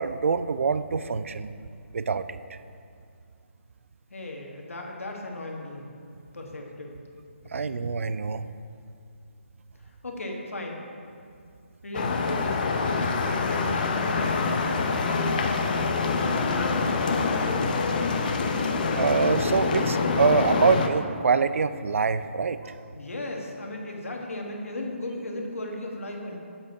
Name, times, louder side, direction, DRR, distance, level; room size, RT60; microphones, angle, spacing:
voice 1, 0.0-1.5 1.9-2.4 7.5-8.5 18.9-22.7, right 5 dB, 75° right, 13 dB, 0.4 m, -25 dB
voice 2, 4.1-5.9 6.3-7.0 7.6-7.8 9.8-10.8 11.8-15.9 16.1-17.9 22.9-26.4, left 1 dB, 90° left, 1 dB, 1.5 m, -35 dB
sound 1, 11.9-20.9, left 4 dB, 40° left, 0.6 m, -26 dB
7.5 x 7.1 x 4.7 m, 2.4 s
hypercardioid pair, 160°, 7 cm